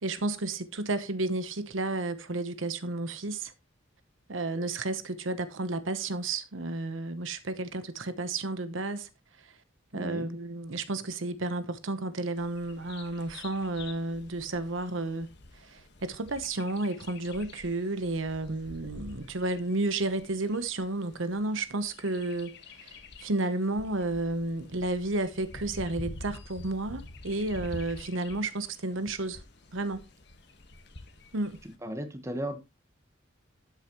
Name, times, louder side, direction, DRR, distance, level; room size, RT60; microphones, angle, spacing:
voice 1, 0.0-3.5 4.3-9.1 9.9-15.3 15.6-29.4 29.7-30.1 31.3-31.6, right 2 dB, 80° right, 1.1 m, -32 dB
voice 2, 9.9-10.3 31.8-32.6, right 1 dB, 15° right, 1.4 m, -35 dB
Bird vocalization bird call bird song, 12.4-31.8, left 2 dB, 60° left, 1.6 m, -48 dB
13.0 x 8.0 x 3.1 m
head